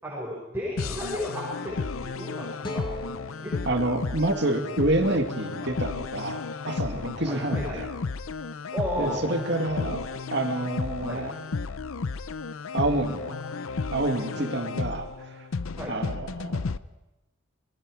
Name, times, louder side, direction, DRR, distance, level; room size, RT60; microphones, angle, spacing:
voice 1, 0.0-2.9 3.2-3.8 7.3-7.8 8.7-9.4 11.1-11.2 14.3-14.5 15.7-15.9, equal, 10° right, -5 dB, 5.6 m, -34 dB
sound 1, 0.8-16.8, left 4 dB, 85° left, 0.6 m, -33 dB
sound 2, 2.6-5.8, equal, 25° left, 1.7 m, -42 dB
voice 2, 3.7-7.9 9.0-10.0 10.3-11.4 12.7-13.4 13.9-15.5 15.9-16.6, right 2 dB, 55° right, 5 dB, 2.1 m, -28 dB
27.5 x 21.0 x 4.9 m, 1.0 s
head